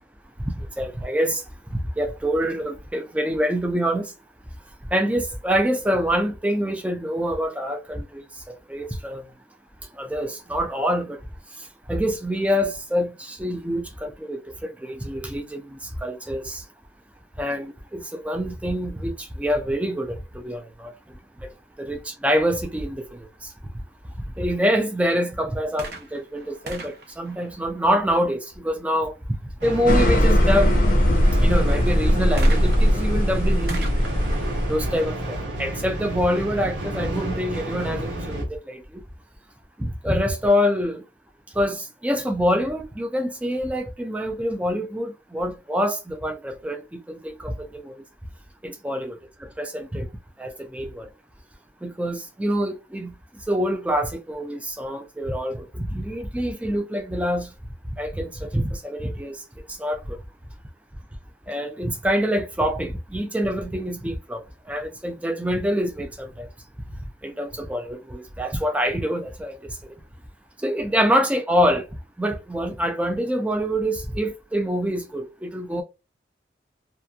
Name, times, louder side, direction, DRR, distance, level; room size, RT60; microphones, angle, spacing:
voice 1, 0.4-1.4 1.7-4.1 4.9-9.2 10.0-11.2 11.9-16.6 17.4-20.9 21.8-23.2 24.4-29.1 29.6-30.7 31.1-33.9 34.7-38.8 39.8-41.0 41.6-47.9 48.6-49.2 49.6-50.1 50.4-51.1 51.8-53.1 53.5-57.5 58.0-59.4 59.8-60.2 61.5-64.4 64.7-66.5 67.2-69.6 69.8-69.9 70.6-71.9 72.2-75.8, equal, 5° right, 0.3 m, -26 dB
sound 1, 25.8-28.3 32.4-36.0 36.8-36.9, right 2 dB, 55° right, 0.6 m, -40 dB
sound 2, 29.6-38.4, right 1 dB, 85° right, 1.3 m, -31 dB
sound 3, 29.9-35.1, equal, 45° left, 0.6 m, -19 dB
2.8 x 2.4 x 2.2 m
head